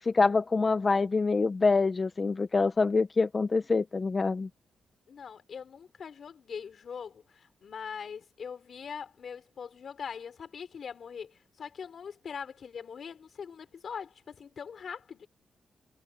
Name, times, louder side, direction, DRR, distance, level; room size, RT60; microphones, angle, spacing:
voice 1, 0.0-4.5, left 4 dB, 30° left, 0.7 m, -25 dB
voice 2, 5.1-15.3, left 6 dB, 55° left, 5.4 m, -42 dB
wide cardioid pair, 125°, 0 cm